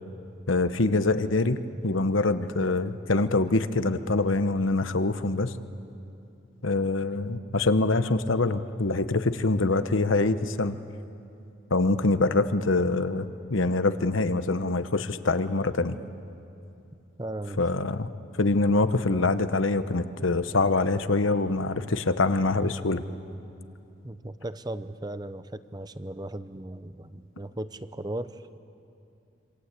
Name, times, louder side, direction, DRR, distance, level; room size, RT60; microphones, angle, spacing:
voice 1, 0.5-1.6 1.8-5.5 6.6-10.8 11.7-16.0 17.6-18.1 18.4-23.0, left 3 dB, 80° left, 11 dB, 1.1 m, -24 dB
voice 2, 17.2-17.6 24.0-28.6, right 1 dB, 20° right, 12 dB, 0.7 m, -37 dB
27.0 x 26.0 x 8.3 m, 2.7 s
head